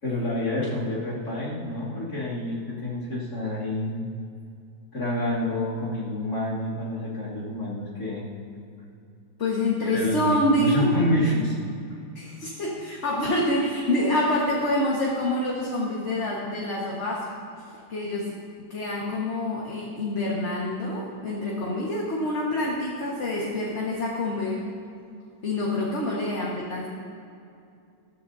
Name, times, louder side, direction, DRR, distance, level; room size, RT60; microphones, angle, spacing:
voice 1, 0.0-4.1 4.9-8.3 9.9-11.5, left 1 dB, 65° left, -8 dB, 3.2 m, -28 dB
voice 2, 9.4-10.9 12.2-17.3 17.9-18.4 18.7-24.6 25.4-26.9, left 1 dB, 45° left, -4 dB, 1.8 m, -26 dB
21.0 x 13.0 x 2.8 m, 2.5 s
omnidirectional pair, 1.8 m